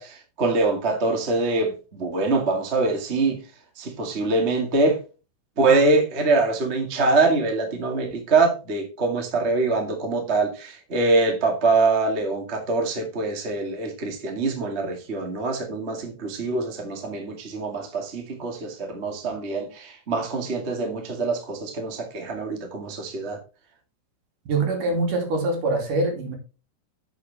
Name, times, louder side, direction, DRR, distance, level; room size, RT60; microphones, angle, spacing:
voice 1, 0.0-3.4 3.8-5.0 5.6-23.4, right 3 dB, 25° right, 1.5 m, -24 dB
voice 2, 24.5-26.4, right 2 dB, 55° right, 4.0 m, -24 dB
11.0 x 7.0 x 3.5 m
omnidirectional pair, 4.5 m